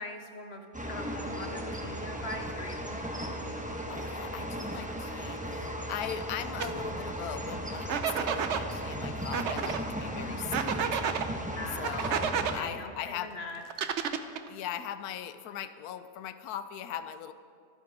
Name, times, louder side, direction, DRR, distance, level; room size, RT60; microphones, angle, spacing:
voice 1, 0.0-3.1 11.6-12.1 12.5-13.6, left 2 dB, 50° left, 4 dB, 0.9 m, -42 dB
sound 1, 0.7-12.6, equal, 5° right, 0.9 m, -36 dB
voice 2, 3.9-11.0 11.7-13.4 14.5-17.3, left 10 dB, 80° left, 11 dB, 1.2 m, -40 dB
sound 2, 6.6-6.7 7.9-8.6 9.3-9.8 10.5-11.3 11.8-12.5 13.7-14.5, right 7 dB, 55° right, 0.9 m, -30 dB
25.5 x 9.8 x 3.6 m, 2.4 s
omnidirectional pair, 1.6 m